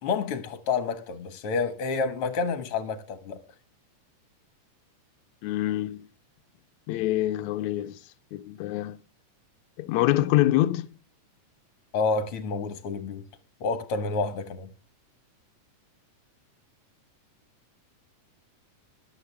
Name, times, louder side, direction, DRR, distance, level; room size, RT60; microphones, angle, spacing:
voice 1, 0.0-3.4 11.9-13.2 13.6-14.7, left 4 dB, 55° left, 2.0 m, -29 dB
voice 2, 5.4-6.1 6.9-8.0 8.3-9.0 9.8-10.9, left 15 dB, 75° left, 1.9 m, -25 dB
14.0 x 11.5 x 3.4 m
omnidirectional pair, 3.7 m